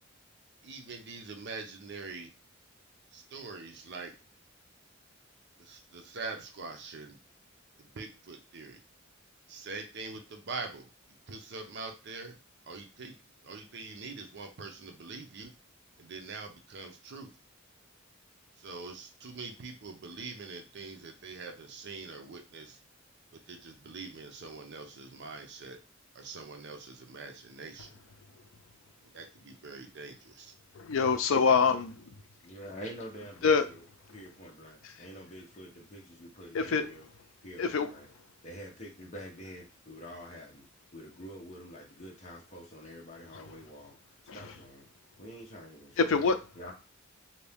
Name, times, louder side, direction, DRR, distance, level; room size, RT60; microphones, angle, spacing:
voice 1, 0.6-2.3 3.1-4.1 5.6-7.2 7.9-8.8 9.5-10.9 11.3-12.3 12.7-13.1 13.4-15.5 16.0-17.3 18.6-22.8 23.3-25.8 26.1-27.9 29.1-30.5, right 4 dB, 55° right, 4 dB, 0.6 m, -43 dB
voice 2, 30.8-31.9 33.4-33.7 36.5-36.8 37.6-37.9 46.1-46.3, left 5 dB, 75° left, 9 dB, 0.5 m, -24 dB
voice 3, 32.4-33.8 34.1-37.1 37.4-38.1 38.4-40.7 40.9-44.9 45.2-46.2 46.6-46.7, equal, 35° left, -2 dB, 0.8 m, -47 dB
2.7 x 2.6 x 3.4 m, 0.32 s
head